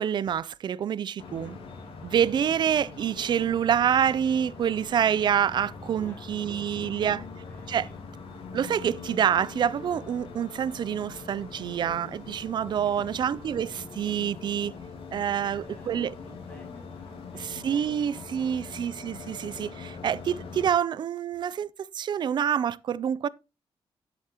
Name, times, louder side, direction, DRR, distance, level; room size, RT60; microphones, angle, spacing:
voice 1, 0.0-1.6 2.0-7.2 7.7-7.9 8.5-14.7 15.1-16.2 17.3-21.7 21.9-23.3, right 8 dB, 55° right, 0.4 m, -27 dB
sound 1, 1.2-20.7, left 4 dB, 80° left, 2.1 m, -43 dB
voice 2, 5.9-8.0 12.8-13.2 15.4-18.8, left 1 dB, 15° left, 1.8 m, -54 dB
10.5 x 8.0 x 2.9 m
wide cardioid pair, 165°, 9 cm